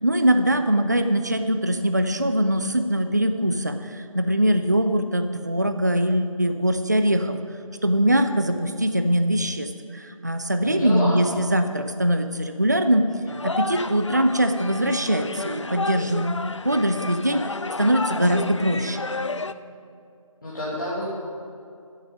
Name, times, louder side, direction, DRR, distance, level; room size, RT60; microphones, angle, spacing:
voice 1, 0.0-7.4 7.8-13.1 13.4-17.4 17.8-19.0, equal, 30° right, 8 dB, 0.4 m, -22 dB
voice 2, 10.6-11.2 20.4-21.1, equal, 35° left, -8 dB, 1.9 m, -28 dB
sound 1, 13.3-19.5, left 3 dB, 55° left, 0.4 m, -31 dB
14.0 x 7.9 x 5.2 m, 2.4 s
figure-of-eight pair, 165°, 18 cm